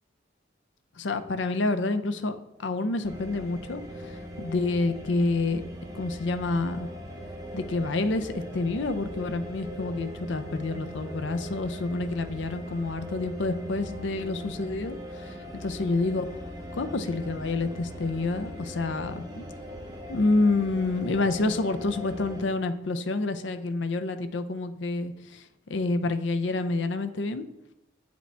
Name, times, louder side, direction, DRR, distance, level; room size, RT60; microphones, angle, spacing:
voice 1, 1.0-5.6 5.9-6.9 7.5-15.3 15.6-16.3 16.7-19.4 20.1-25.4 25.7-27.5, left 2 dB, 75° left, 10 dB, 0.5 m, -28 dB
sound 1, 3.0-22.4, equal, 20° right, 0.9 m, -40 dB
7.9 x 5.1 x 3.4 m, 0.85 s
head